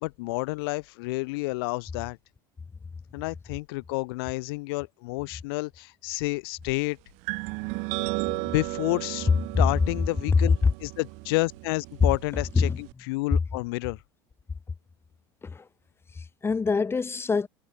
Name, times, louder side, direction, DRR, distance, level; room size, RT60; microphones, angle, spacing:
voice 1, 0.0-2.2 3.1-7.0 8.4-9.3 9.6-14.0, left 24 dB, 70° left, 0.6 m, -30 dB
sound 1, 7.3-12.9, right 30 dB, 65° right, 1.8 m, -35 dB
voice 2, 16.1-17.5, left 4 dB, 20° left, 2.4 m, -26 dB
supercardioid pair, 100°, 13 cm